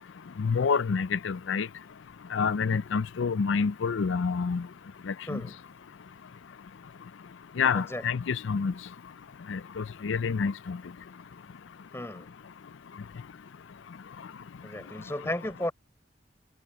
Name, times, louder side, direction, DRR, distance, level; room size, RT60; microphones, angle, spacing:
voice 1, 0.4-1.7 2.3-4.6 5.1-5.4 7.6-8.7 9.5-10.8, left 5 dB, 75° left, 0.4 m, -28 dB
voice 2, 5.3-5.6 7.7-8.0 11.9-12.3 14.6-15.7, left 1 dB, 15° left, 4.3 m, -34 dB
head